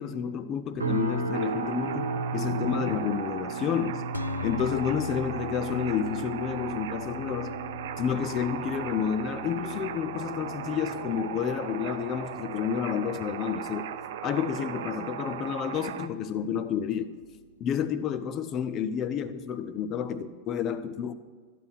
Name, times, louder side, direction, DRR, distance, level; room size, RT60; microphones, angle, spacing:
voice 1, 0.0-4.1 4.4-7.6 8.0-13.9 14.2-17.1 17.6-21.1, left 8 dB, 35° left, 10 dB, 0.7 m, -30 dB
sound 1, 0.8-16.0 16.3-16.7 17.2-17.4, right 3 dB, 75° right, 1.0 m, -38 dB
sound 2, 1.3-16.1, right 10 dB, 55° right, 0.6 m, -38 dB
sound 3, 4.1-14.6, left 6 dB, 80° left, 0.5 m, -42 dB
12.0 x 9.2 x 6.0 m, 1.5 s
figure-of-eight pair, 90°, 0 cm